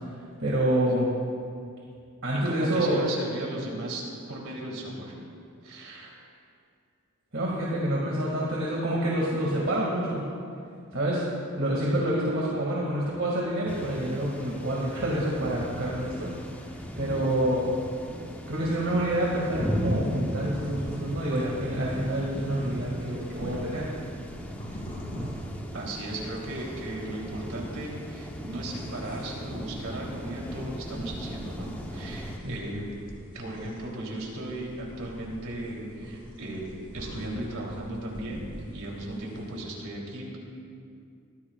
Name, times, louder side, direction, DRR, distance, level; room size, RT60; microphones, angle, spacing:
voice 1, 0.4-1.1 2.2-3.0 7.3-10.3 10.9-11.2 11.6-16.3 17.0-17.7 18.5-23.9 25.1-25.3 32.4-32.5, right 1 dB, 60° right, -5 dB, 2.2 m, -27 dB
voice 2, 2.3-4.0 4.3-5.1 5.6-6.2 24.7-24.8 25.7-32.9 33.3-36.6 36.9-40.4, right 1 dB, 75° right, -2 dB, 3.3 m, -36 dB
sound 1, 13.7-32.4, equal, 5° left, 0.9 m, -37 dB
sound 2, 19.9-39.6, equal, 40° left, 3.2 m, -45 dB
22.5 x 15.5 x 2.4 m, 2.4 s
head